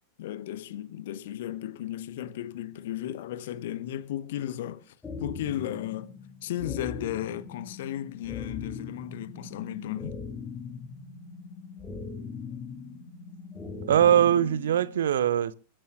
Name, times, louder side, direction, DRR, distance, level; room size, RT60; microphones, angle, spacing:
voice 1, 0.2-6.1 6.4-10.2, left 12 dB, 55° left, 1.1 m, -35 dB
sound 1, 5.0-15.0, left 5 dB, 15° left, 2.1 m, -40 dB
voice 2, 13.8-15.5, right 10 dB, 60° right, 0.6 m, -22 dB
29.0 x 11.0 x 2.5 m
figure-of-eight pair, 90°, 0 cm